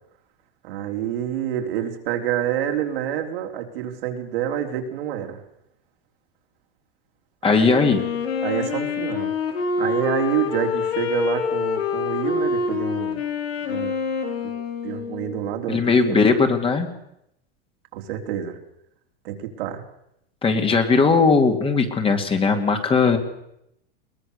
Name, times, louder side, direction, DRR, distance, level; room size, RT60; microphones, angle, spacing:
voice 1, 0.6-5.4 7.5-7.8 8.4-13.2 13.7-14.0 14.4-14.5 14.8-16.3 17.9-18.6 19.2-19.8, right 10 dB, 70° right, 3 dB, 3.5 m, -28 dB
voice 2, 7.4-8.0 15.7-16.9 20.4-23.2, left 4 dB, 20° left, 5 dB, 2.4 m, -18 dB
Wind instrument woodwind instrument, 7.7-15.5, left 5 dB, 85° left, 4.5 m, -26 dB
22.0 x 19.0 x 6.8 m, 0.80 s
supercardioid pair, 135°, 30 cm